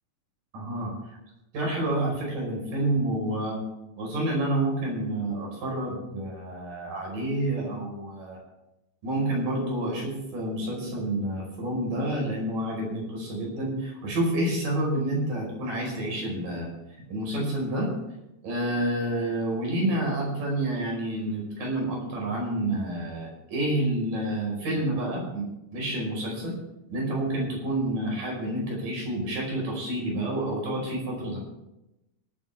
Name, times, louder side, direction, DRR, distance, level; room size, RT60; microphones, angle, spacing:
voice 1, 0.5-0.9 1.5-3.6 4.0-8.4 9.0-16.7 17.1-17.9 18.4-26.5 26.9-31.4, right 1 dB, 85° right, -2 dB, 6.9 m, -29 dB
28.0 x 9.7 x 3.6 m, 0.92 s
omnidirectional pair, 3.7 m